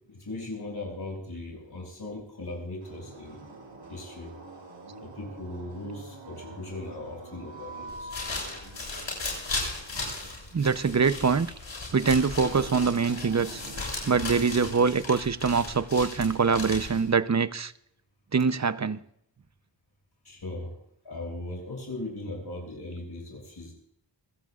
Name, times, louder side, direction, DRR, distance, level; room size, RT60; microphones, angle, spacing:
voice 1, 0.1-3.4 3.9-4.3 5.0-8.1 20.2-20.7 21.0-23.7, left 2 dB, 60° left, 7.3 m, -38 dB
sound 1, 2.8-13.8, right 2 dB, 85° right, 6.0 m, -46 dB
sound 2, 7.9-17.1, left 3 dB, 85° left, 7.7 m, -36 dB
voice 2, 10.5-11.5 11.9-13.6 14.0-17.7 18.3-19.0, right 5 dB, 40° right, 0.7 m, -24 dB
27.0 x 16.0 x 2.5 m
wide cardioid pair, 100°, 44 cm